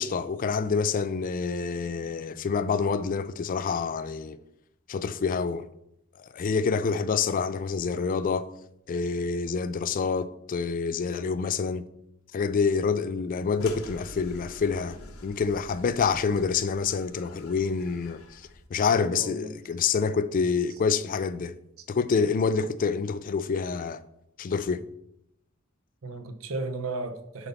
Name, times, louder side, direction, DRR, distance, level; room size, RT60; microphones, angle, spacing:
voice 1, 0.0-4.4 4.9-5.7 6.2-8.5 8.9-11.8 12.3-18.4 18.7-21.5 21.9-24.0 24.4-24.8, left 5 dB, 40° left, 0.3 m, -27 dB
sound 1, 13.6-18.7, left 2 dB, 90° left, 0.9 m, -45 dB
voice 2, 18.9-19.5 26.0-27.5, right 2 dB, 85° right, 0.8 m, -34 dB
7.3 x 4.0 x 5.4 m
head